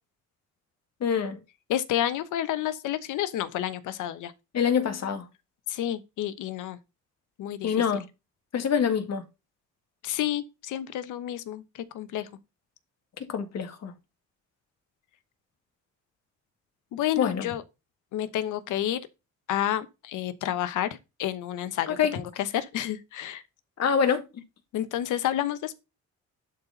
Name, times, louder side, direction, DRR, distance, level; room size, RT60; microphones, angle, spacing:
voice 1, 1.0-1.4 4.5-5.2 7.6-8.1 8.5-9.2 13.3-13.9 17.2-17.5 21.9-22.2 23.8-24.4, left 7 dB, 60° left, 1.9 m, -25 dB
voice 2, 1.7-4.3 5.7-6.8 7.4-7.8 10.0-11.6 11.9-12.3 16.9-17.6 18.1-19.0 19.5-22.2 22.5-23.4 24.7-25.8, left 12 dB, 85° left, 1.0 m, -30 dB
11.5 x 4.2 x 4.0 m
cardioid pair, 90°, 30 cm